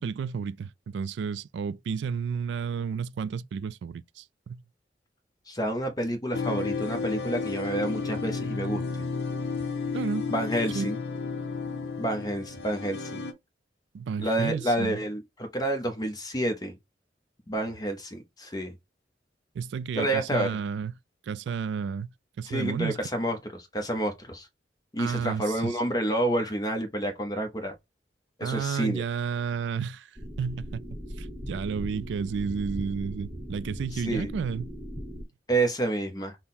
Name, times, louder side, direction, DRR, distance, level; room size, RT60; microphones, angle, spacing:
voice 1, 0.0-4.6 9.9-10.3 10.7-10.9 13.9-15.0 19.5-20.9 21.2-22.1 22.4-23.0 25.0-25.8 28.4-30.1 30.4-30.8 31.2-34.7, right 6 dB, 70° right, 0.3 m, -32 dB
voice 2, 5.5-8.8 10.3-11.0 12.0-13.2 14.2-16.7 17.5-18.7 20.0-20.5 22.5-24.5 24.9-27.7 28.4-29.0 33.9-34.3 35.5-36.4, right 1 dB, 20° left, 0.7 m, -29 dB
sound 1, 6.3-13.3, left 4 dB, 65° left, 0.7 m, -32 dB
sound 2, 30.2-35.2, equal, 10° right, 1.0 m, -39 dB
5.6 x 2.1 x 4.1 m
head